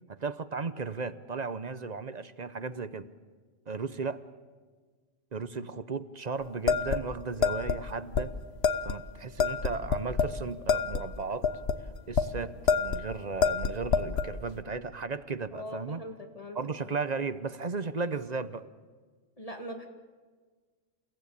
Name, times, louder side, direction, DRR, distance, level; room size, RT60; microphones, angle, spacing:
voice 1, 0.1-3.1 3.7-4.2 5.3-8.3 8.8-11.5 12.1-16.0 16.5-18.7, right 4 dB, 40° right, 0.8 m, -35 dB
sound 1, 6.7-7.8 8.1-8.2 8.6-9.0 9.4-10.4 10.7-12.3 12.7-13.0 13.4-14.3, left 5 dB, 55° left, 1.2 m, -27 dB
voice 2, 15.5-17.0 19.4-19.9, left 1 dB, 30° left, 2.1 m, -42 dB
29.0 x 16.5 x 8.6 m
omnidirectional pair, 1.3 m